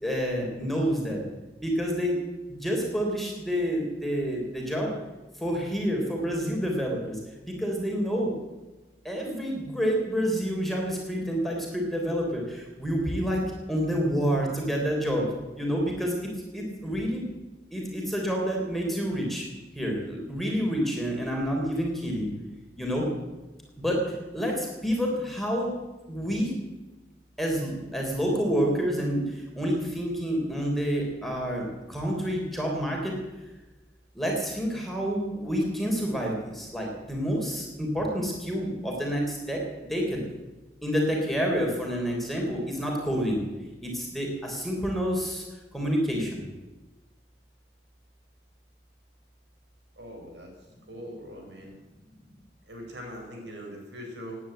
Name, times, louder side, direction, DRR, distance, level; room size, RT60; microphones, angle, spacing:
voice 1, 0.0-1.2 1.6-2.1 2.5-4.9 5.4-8.3 9.0-13.4 13.7-15.3 15.6-16.1 16.5-17.2 17.7-19.5 19.7-22.3 22.8-23.1 23.8-25.8 26.1-26.5 27.4-33.2 34.1-39.6 39.9-40.2 40.8-43.4 43.8-45.4 45.7-46.4, equal, ahead, -1 dB, 3.7 m, -28 dB
voice 2, 50.0-50.5 50.9-51.7 52.7-54.4, equal, 75° right, 1 dB, 4.6 m, -41 dB
18.0 x 9.8 x 8.1 m, 1.1 s
head